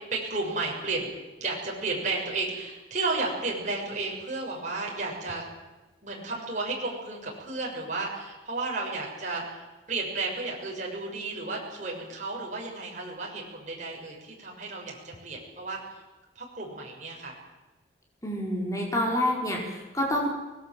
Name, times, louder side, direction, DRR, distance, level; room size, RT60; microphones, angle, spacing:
voice 1, 0.1-1.1 1.4-5.4 6.0-15.8 16.3-17.3, right 3 dB, 40° right, -1 dB, 6.5 m, -33 dB
voice 2, 18.2-20.3, left 1 dB, 20° left, -2 dB, 4.9 m, -27 dB
24.0 x 19.5 x 7.8 m, 1.2 s
head